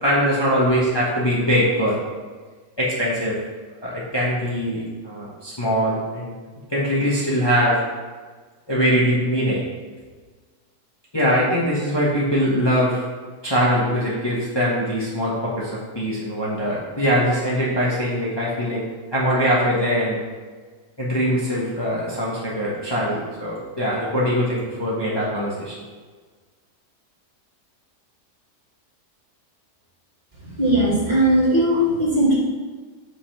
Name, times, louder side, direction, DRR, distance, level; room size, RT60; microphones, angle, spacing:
voice 1, 0.0-2.0 2.8-3.4 3.8-6.3 6.7-7.8 8.7-9.6 11.1-13.0 13.4-18.8 19.1-20.2 21.0-25.7, equal, 15° left, -7 dB, 1.3 m, -22 dB
voice 2, 30.4-32.3, right 1 dB, 30° right, -7 dB, 2.1 m, -19 dB
5.7 x 5.5 x 5.7 m, 1.5 s
omnidirectional pair, 1.6 m